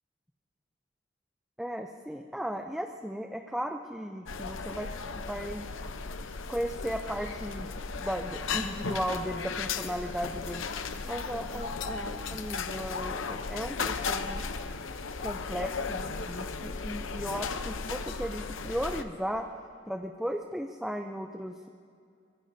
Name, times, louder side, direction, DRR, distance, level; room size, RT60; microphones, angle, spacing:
voice 1, 1.6-5.7 6.5-10.7 11.0-14.4 15.2-19.5 19.9-21.7, equal, ahead, 3 dB, 0.5 m, -36 dB
sound 1, 4.3-19.0, left 4 dB, 85° left, 0.8 m, -35 dB
24.0 x 22.0 x 2.7 m, 2.3 s
head